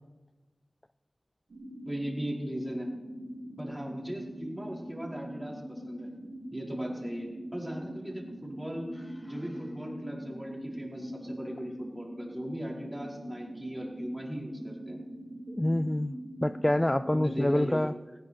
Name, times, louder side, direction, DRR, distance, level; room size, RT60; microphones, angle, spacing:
sound 1, 1.5-17.5, equal, 90° right, 2.5 m, -43 dB
voice 1, 1.8-2.9 3.6-6.1 6.5-8.9 9.3-15.0 17.1-17.9, equal, 15° right, -2 dB, 4.9 m, -38 dB
voice 2, 15.5-16.1 16.4-17.9, left 1 dB, 20° left, 13 dB, 0.4 m, -26 dB
18.5 x 17.0 x 4.6 m, 1.3 s
wide cardioid pair, 45°, 0 cm